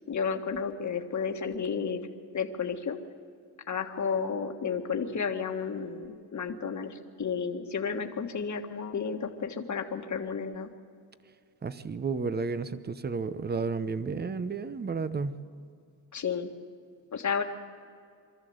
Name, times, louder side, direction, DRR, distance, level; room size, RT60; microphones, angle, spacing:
voice 1, 0.1-2.1 2.3-3.0 3.7-10.7 16.1-16.5 17.1-17.4, left 6 dB, 40° left, 5 dB, 1.7 m, -32 dB
voice 2, 11.6-15.4, right 4 dB, 20° right, 14 dB, 0.8 m, -32 dB
24.0 x 13.5 x 8.0 m, 2.4 s
cardioid pair, 110°, 46 cm